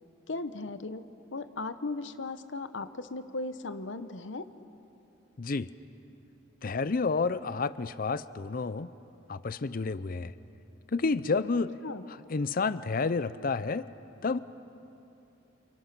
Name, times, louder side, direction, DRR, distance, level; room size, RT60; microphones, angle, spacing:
voice 1, 0.3-1.0 1.3-4.5 11.8-12.0, left 3 dB, 70° left, 11 dB, 0.9 m, -37 dB
voice 2, 5.4-5.7 6.6-8.9 9.3-10.3 10.9-11.8 12.3-13.9 14.2-14.4, left 4 dB, 45° left, 15 dB, 0.5 m, -30 dB
29.0 x 28.5 x 6.0 m, 2.9 s
head